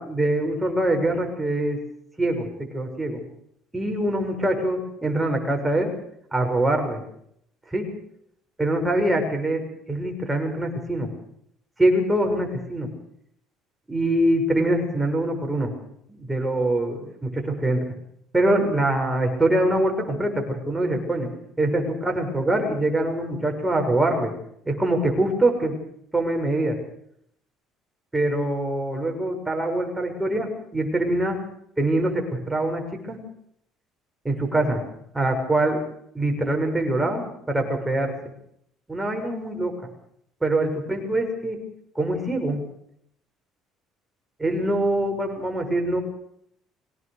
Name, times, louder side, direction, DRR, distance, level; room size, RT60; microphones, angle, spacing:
voice 1, 0.0-1.8 2.2-3.2 3.7-5.9 6.3-7.0 7.7-7.9 8.6-11.1 11.8-12.9 13.9-15.7 16.2-17.8 18.3-21.3 21.6-24.3 24.6-25.8 26.1-26.7 28.1-31.4 31.8-33.2 34.2-34.9 35.1-35.8 36.1-38.1 38.9-39.7 40.4-41.6 41.9-42.6 44.4-46.0, right 1 dB, 10° right, 3 dB, 6.7 m, -24 dB
24.0 x 18.0 x 6.8 m, 0.71 s
supercardioid pair, 95°, 0 cm